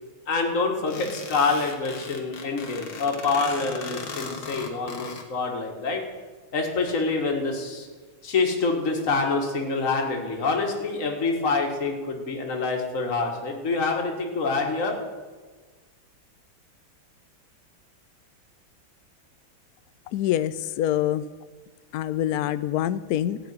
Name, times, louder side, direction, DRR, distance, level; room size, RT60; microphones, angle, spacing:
voice 1, 0.3-6.0 6.5-7.9 8.2-15.0, left 3 dB, 40° left, 2 dB, 2.1 m, -26 dB
sound 1, 0.9-5.2, left 4 dB, 65° left, 2.1 m, -37 dB
voice 2, 20.1-21.2 21.9-23.4, left 12 dB, 90° left, 15 dB, 0.8 m, -25 dB
15.5 x 6.2 x 9.5 m, 1.4 s
omnidirectional pair, 2.2 m